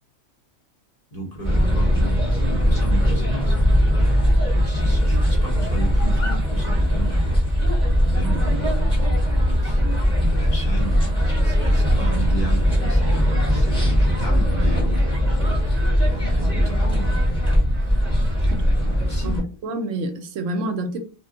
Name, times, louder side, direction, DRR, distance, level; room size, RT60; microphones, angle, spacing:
voice 1, 1.1-3.7 4.1-7.5 8.0-9.1 9.6-9.9 10.3-15.1 16.0-17.6 18.4-19.3, right 3 dB, 35° left, 0.9 m, -33 dB
sound 1, 1.4-19.4, equal, 5° left, 1.0 m, -20 dB
voice 2, 18.4-21.0, right 1 dB, 75° right, 0.9 m, -29 dB
2.4 x 2.1 x 3.6 m
omnidirectional pair, 1.4 m